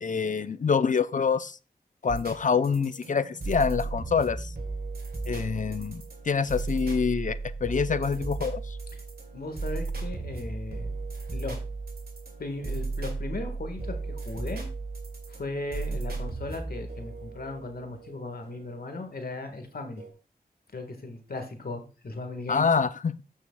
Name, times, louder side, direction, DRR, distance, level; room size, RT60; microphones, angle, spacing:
voice 1, 0.0-1.6 2.0-4.5 5.3-8.8 22.5-23.2, left 5 dB, 55° left, 14 dB, 0.5 m, -26 dB
sound 1, 2.1-19.1 20.0-20.1, right 3 dB, 70° right, 2.4 m, -35 dB
voice 2, 9.3-11.0 11.3-11.6 12.4-14.7 15.3-20.0 20.7-22.7, left 2 dB, 70° left, 6 dB, 1.5 m, -37 dB
14.0 x 6.3 x 2.2 m, 0.33 s
wide cardioid pair, 60°, 16 cm